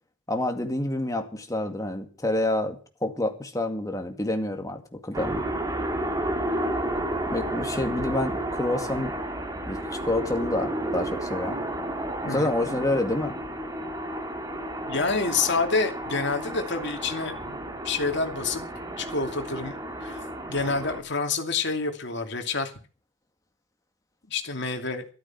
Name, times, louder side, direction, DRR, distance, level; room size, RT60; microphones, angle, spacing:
voice 1, 0.3-5.4 7.3-9.1 9.6-11.6 12.2-13.4, left 1 dB, 15° left, 5 dB, 2.1 m, -28 dB
sound 1, 5.1-21.0, right 1 dB, 15° right, 2.3 m, -32 dB
voice 2, 14.9-18.6 19.0-19.8 20.0-20.2 20.5-22.7 24.3-25.0, left 4 dB, 60° left, 5 dB, 2.6 m, -28 dB
13.5 x 13.0 x 5.9 m, 0.38 s
head